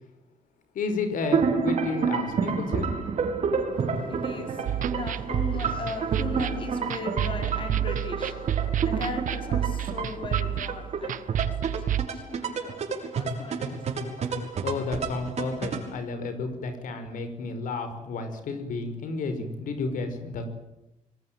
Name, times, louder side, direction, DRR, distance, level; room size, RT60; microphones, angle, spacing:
voice 1, 0.7-2.9 14.6-20.5, left 3 dB, 85° left, 5.4 m, -31 dB
sound 1, 1.3-15.9, right 5 dB, 55° right, 6.1 m, -30 dB
voice 2, 3.7-14.6, left 3 dB, 40° left, 5.0 m, -39 dB
sound 2, 4.7-12.1, right 11 dB, 80° right, 1.1 m, -29 dB
25.5 x 21.0 x 9.1 m
wide cardioid pair, 175°, 13 cm